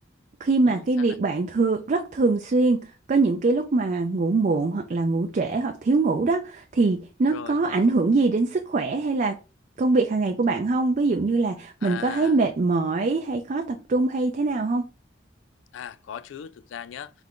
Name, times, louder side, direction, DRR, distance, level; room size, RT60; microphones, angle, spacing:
voice 1, 0.4-9.4 9.8-14.8, right 3 dB, 40° right, 0.4 m, -23 dB
voice 2, 11.8-12.4 15.7-17.1, left 8 dB, 85° left, 0.3 m, -38 dB
3.6 x 3.3 x 3.7 m
head